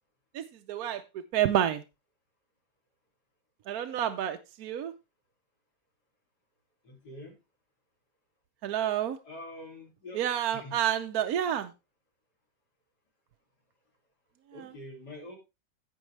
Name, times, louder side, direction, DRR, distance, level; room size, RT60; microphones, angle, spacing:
voice 1, 0.3-1.8 3.7-4.9 8.6-9.2 10.1-11.7 14.5-14.7, right 10 dB, 70° right, 7 dB, 1.2 m, -29 dB
voice 2, 6.8-7.4 9.2-10.3 10.5-10.8 14.5-15.4, left 1 dB, 85° left, 0 dB, 3.6 m, -45 dB
16.0 x 5.4 x 3.2 m, 0.26 s
omnidirectional pair, 1.7 m